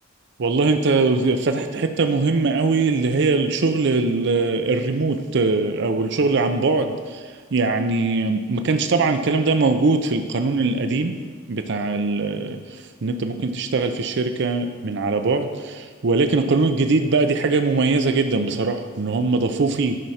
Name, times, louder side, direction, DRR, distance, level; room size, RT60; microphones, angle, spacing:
voice 1, 0.4-7.2 7.5-11.1 11.5-20.0, right 3 dB, 60° right, 7 dB, 0.5 m, -21 dB
11.0 x 6.0 x 4.2 m, 1.5 s
head